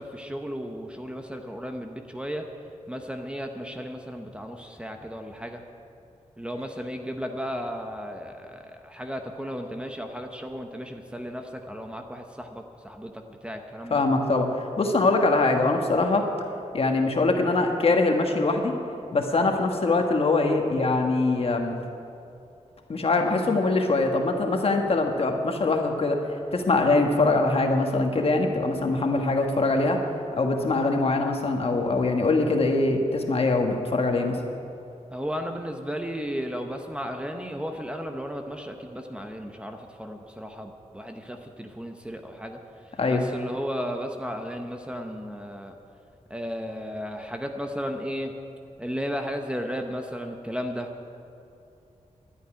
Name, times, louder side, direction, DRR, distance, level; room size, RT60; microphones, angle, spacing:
voice 1, 0.0-2.5 2.9-5.6 6.4-14.0 35.1-42.6 43.1-45.8 46.3-48.3 48.8-50.9, equal, 10° right, 4 dB, 0.8 m, -34 dB
voice 2, 13.9-14.5 14.8-16.3 16.7-18.7 19.1-21.8 22.9-26.2 26.5-30.0 30.3-34.4 43.0-43.2, left 3 dB, 50° left, 3 dB, 1.4 m, -23 dB
11.5 x 9.4 x 10.0 m, 2.7 s
wide cardioid pair, 165°, 13 cm